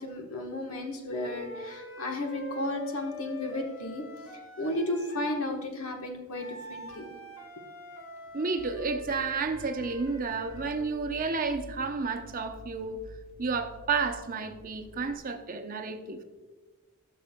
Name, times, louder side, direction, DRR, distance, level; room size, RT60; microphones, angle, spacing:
voice 1, 0.0-4.0 4.6-7.1, left 1 dB, 80° left, 2 dB, 1.2 m, -33 dB
sound 1, 1.1-5.4 6.3-11.0, left 1 dB, 60° left, 1.6 m, -45 dB
voice 2, 8.3-13.0 13.4-16.2, right 4 dB, 40° right, 7 dB, 0.7 m, -31 dB
sound 2, 8.6-15.2, right 1 dB, 40° left, 1.9 m, -49 dB
15.5 x 6.6 x 2.2 m, 1.2 s
head